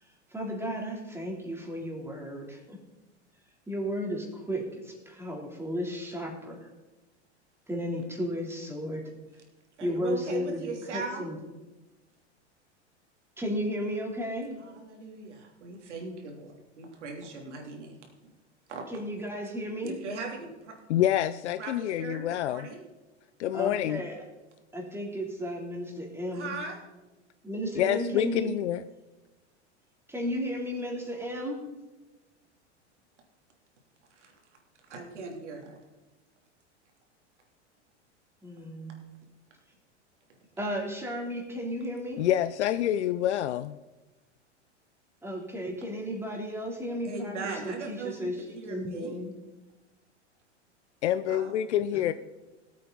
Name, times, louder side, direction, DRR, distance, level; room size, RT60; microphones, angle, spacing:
voice 1, 0.3-2.8 3.7-6.7 7.7-9.1 9.8-10.6 10.9-11.4 13.4-14.6 18.9-20.0 23.5-24.2 24.7-26.6 27.4-28.5 30.1-31.6 38.4-38.9 40.6-42.2 45.2-49.3 51.9-52.1, equal, 5° right, 0 dB, 3.2 m, -34 dB
voice 2, 9.8-11.3 14.6-18.1 18.7-18.8 19.8-20.8 21.6-22.9 26.3-26.8 34.1-34.3 34.8-35.8 47.0-49.2 51.3-51.5, right 4 dB, 75° right, 1 dB, 3.1 m, -39 dB
voice 3, 20.9-22.7 23.4-24.0 27.8-28.8 42.2-43.8 51.0-52.1, left 11 dB, 75° left, 13 dB, 0.6 m, -27 dB
18.0 x 8.4 x 4.0 m, 1.1 s
hypercardioid pair, 100°, 35 cm